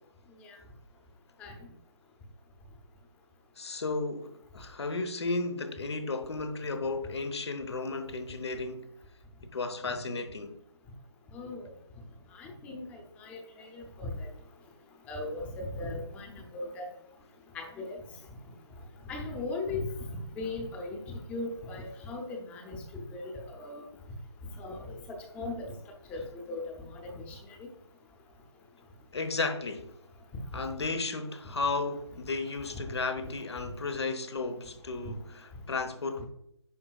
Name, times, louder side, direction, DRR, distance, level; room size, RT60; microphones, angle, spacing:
voice 1, 3.6-8.9 9.5-10.5 29.1-29.9 30.5-36.3, left 3 dB, 65° left, 1.1 m, -34 dB
voice 2, 12.4-12.8 13.2-14.3 15.1-16.8 17.5-18.0 19.1-19.9 20.4-23.2 23.5-23.8 24.6-25.7 26.1-27.4, left 2 dB, 10° left, 0.8 m, -38 dB
9.6 x 5.3 x 2.4 m
figure-of-eight pair, 150°, 15 cm